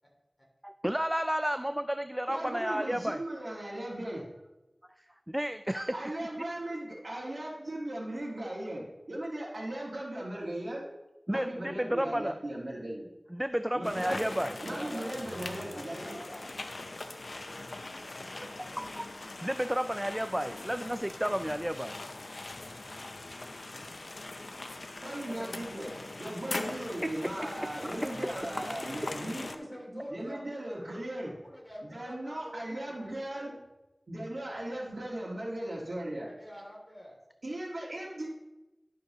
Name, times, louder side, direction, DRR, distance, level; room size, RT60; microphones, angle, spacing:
voice 1, 0.6-3.2 5.3-6.1 11.3-12.3 13.3-14.6 18.4-18.5 18.8-22.0 26.7-26.8, equal, 10° right, 9 dB, 0.3 m, -32 dB
voice 2, 1.6-2.1 14.3-19.0 24.1-24.3 24.9-26.6 27.5-27.6 29.1-30.9 31.4-33.5 36.3-37.2, equal, 25° left, -2 dB, 2.8 m, -48 dB
voice 3, 2.3-4.2 5.9-10.9 11.3-13.1 13.7-14.4 14.6-16.2 25.0-25.9 26.2-29.5 30.1-31.3 31.8-33.6 34.1-36.3 37.4-38.3, right 1 dB, 90° right, -8 dB, 1.8 m, -37 dB
sound 1, 13.8-29.6, left 2 dB, 85° left, 0.5 m, -41 dB
11.5 x 6.3 x 3.0 m, 0.99 s
wide cardioid pair, 55°, 0 cm